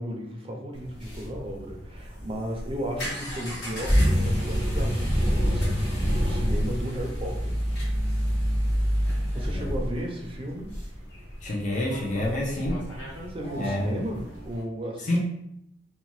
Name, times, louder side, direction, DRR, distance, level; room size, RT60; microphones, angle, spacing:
voice 1, 0.0-7.6 8.9-10.7 13.3-15.1, equal, 30° right, 1 dB, 0.5 m, -35 dB
sound 1, 0.7-14.6, equal, 85° left, 1.2 m, -28 dB
voice 2, 11.4-12.9 13.6-14.0 15.0-15.2, left 1 dB, 45° left, -2 dB, 0.6 m, -28 dB
2.8 x 2.2 x 3.0 m, 0.78 s
head